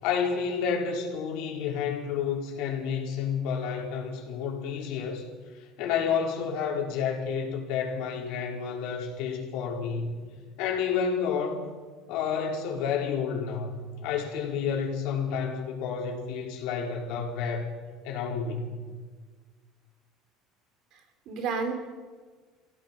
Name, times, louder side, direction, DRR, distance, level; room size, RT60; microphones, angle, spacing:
voice 1, 0.0-5.3 5.8-10.1 10.6-11.7 12.1-17.8 18.0-18.8, left 6 dB, 65° left, 0 dB, 4.4 m, -30 dB
voice 2, 20.9-21.7, right 5 dB, 45° right, 6 dB, 3.3 m, -32 dB
28.0 x 17.0 x 5.9 m, 1.5 s
cardioid pair, 170°, 0 cm